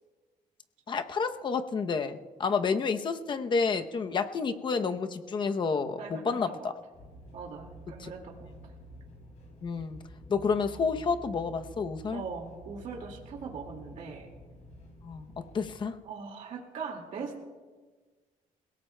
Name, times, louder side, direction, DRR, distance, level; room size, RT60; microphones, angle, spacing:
voice 1, 0.9-6.7 8.0-8.1 9.6-10.0 10.3-12.2 15.0-15.3 15.5-16.0, left 5 dB, 35° left, 8 dB, 0.7 m, -30 dB
voice 2, 6.0-6.7 7.3-8.5 12.1-14.3 16.0-17.4, right 5 dB, 60° right, 1 dB, 2.1 m, -41 dB
sound 1, 6.9-15.8, right 1 dB, 55° left, 6.1 m, -49 dB
29.0 x 17.5 x 2.2 m, 1.4 s
cardioid pair, 180°, 14 cm